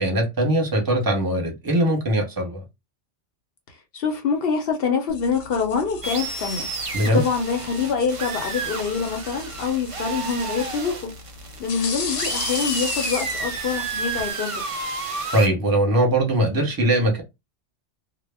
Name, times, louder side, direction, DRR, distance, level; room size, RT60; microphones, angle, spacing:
voice 1, 0.0-2.6 6.9-7.2 15.3-17.2, right 1 dB, 20° right, 0.8 m, -21 dB
voice 2, 3.7-6.7 7.1-11.1 11.6-14.6, left 5 dB, 60° left, 0.7 m, -25 dB
sound 1, 5.1-14.3, left 5 dB, 90° left, 1.0 m, -35 dB
sound 2, 6.0-15.5, right 4 dB, 50° right, 0.4 m, -31 dB
2.1 x 2.0 x 3.3 m
omnidirectional pair, 1.2 m